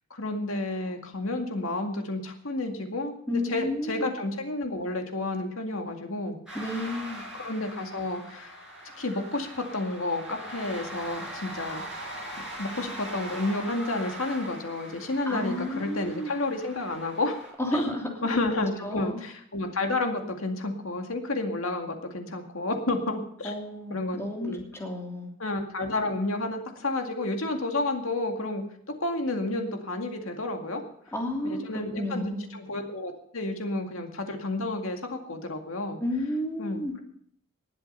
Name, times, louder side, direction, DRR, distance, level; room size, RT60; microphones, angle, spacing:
voice 1, 0.1-6.4 7.3-8.5 9.0-12.1 12.6-17.4 17.7-17.8 18.2-23.5 23.9-24.6 25.4-28.6 29.0-30.8 31.5-36.0 36.6-37.0, left 2 dB, 75° left, 4 dB, 2.2 m, -31 dB
voice 2, 3.3-4.1 6.5-7.2 15.2-16.3 17.6-18.1 18.8-19.2 23.4-25.3 31.1-32.5 36.0-36.9, left 1 dB, 15° left, 0 dB, 3.0 m, -32 dB
sound 1, 6.5-17.5, equal, 5° right, 6.1 m, -41 dB
19.5 x 7.8 x 5.6 m, 0.65 s
head